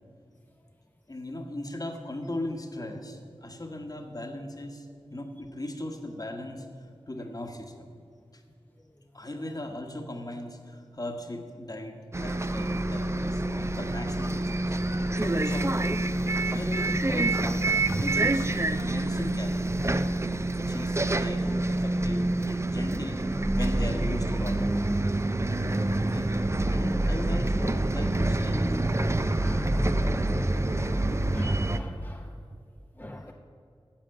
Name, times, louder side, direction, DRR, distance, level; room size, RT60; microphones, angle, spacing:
voice 1, 1.1-6.7 7.1-7.9 8.3-8.4 9.1-15.8 16.5-18.5 18.8-19.7 20.6-24.8 26.1-26.3 26.7-28.9 29.9-30.3 31.0-31.2, left 1 dB, 40° left, 4 dB, 1.3 m, -38 dB
Bus, 12.1-31.8, right 2 dB, 25° right, 0.5 m, -27 dB
voice 2, 29.4-30.0 30.7-31.0 31.3-32.3 33.0-33.3, left 1 dB, 20° left, 1 dB, 0.8 m, -40 dB
10.0 x 7.6 x 7.7 m, 2.4 s
wide cardioid pair, 65°, 10 cm